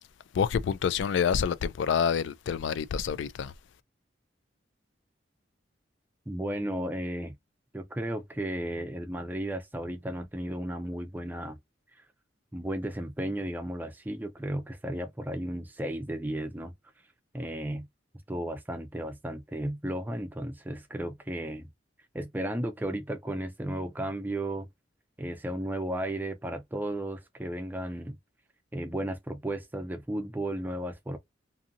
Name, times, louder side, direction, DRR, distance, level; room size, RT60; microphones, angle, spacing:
voice 1, 0.3-3.5, left 7 dB, 75° left, 0.3 m, -27 dB
voice 2, 6.3-7.3 7.7-11.6 12.5-16.7 17.3-17.9 18.3-21.7 22.1-24.7 25.2-28.2 28.7-31.2, right 1 dB, 10° right, 0.4 m, -34 dB
2.6 x 2.6 x 2.5 m
head